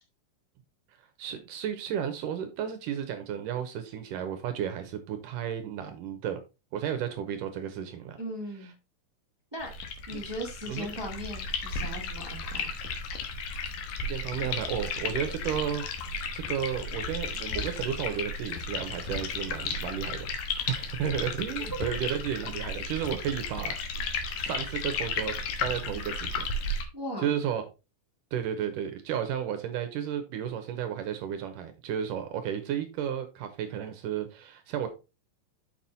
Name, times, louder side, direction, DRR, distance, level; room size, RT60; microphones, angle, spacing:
voice 1, 1.2-6.4 6.7-8.2 10.1-10.3 10.7-10.9 14.0-15.8 16.3-20.3 20.7-23.7 24.4-26.4 27.2-27.6 28.3-34.9, right 9 dB, 75° right, 8 dB, 2.3 m, -33 dB
voice 2, 8.2-8.7 9.5-9.8 10.1-12.7 26.9-27.3, equal, 25° right, 0 dB, 0.5 m, -38 dB
sound 1, 9.6-26.8, left 4 dB, 70° left, 2.7 m, -34 dB
6.8 x 5.9 x 4.0 m, 0.28 s
omnidirectional pair, 4.2 m